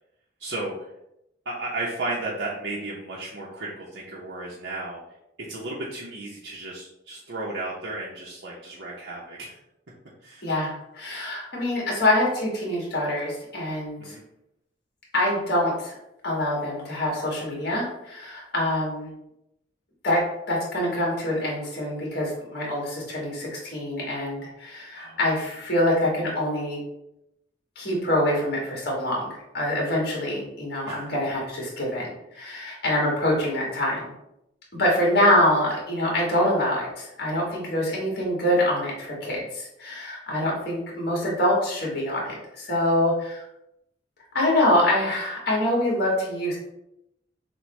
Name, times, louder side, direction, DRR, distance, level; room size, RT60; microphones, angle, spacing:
voice 1, 0.4-0.7 1.5-5.0 5.5-9.6 10.2-10.5 14.0-14.2 24.9-25.2 30.9-31.1, right 2 dB, 70° right, -5 dB, 0.7 m, -34 dB
voice 2, 10.4-14.1 15.1-15.9 16.2-19.1 20.0-26.8 27.7-29.3 29.5-34.0 34.7-43.4 44.3-46.6, left 1 dB, 55° left, -3 dB, 1.5 m, -25 dB
6.1 x 2.2 x 3.2 m, 0.84 s
head